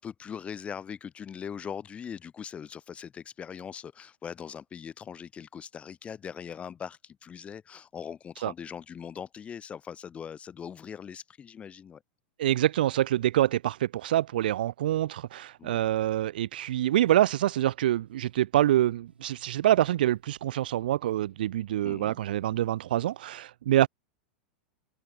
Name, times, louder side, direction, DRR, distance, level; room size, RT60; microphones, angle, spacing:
voice 1, 0.0-12.0 15.6-15.8 21.8-22.2, left 7 dB, 20° left, 0.7 m, -41 dB
voice 2, 12.4-23.9, right 13 dB, 65° right, 0.7 m, -26 dB
sound 1, 16.6-19.5 19.8-23.2, right 6 dB, 80° right, 7.3 m, -63 dB
open air
figure-of-eight pair, 95°, 5 cm